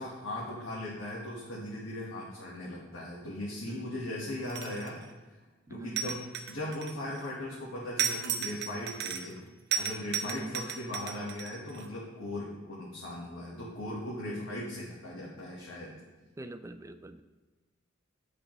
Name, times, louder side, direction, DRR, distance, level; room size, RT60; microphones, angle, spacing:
voice 1, 0.0-5.0 5.7-9.4 9.7-16.0, left 1 dB, 75° left, -5 dB, 1.4 m, -38 dB
sound 1, 4.4-5.0 6.0-7.2 8.0-9.4 9.7-11.8, right 7 dB, 55° right, 0.6 m, -34 dB
voice 2, 5.7-6.0 10.3-10.6 16.4-17.2, right 2 dB, 15° right, 9 dB, 0.3 m, -43 dB
8.1 x 6.6 x 3.1 m, 1.3 s
head